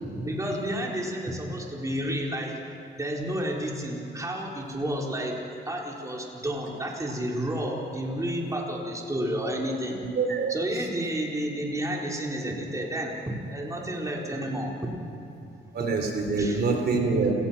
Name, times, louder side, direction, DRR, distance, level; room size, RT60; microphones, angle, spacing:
voice 1, 0.0-2.7 3.0-10.0 10.5-14.9 15.5-15.9 16.4-17.0, right 1 dB, 15° right, -1 dB, 4.2 m, -31 dB
voice 2, 10.0-10.5 15.7-17.3, right 4 dB, 55° right, 3 dB, 3.6 m, -25 dB
28.5 x 19.0 x 5.9 m, 2.9 s
cardioid pair, 90°, 20 cm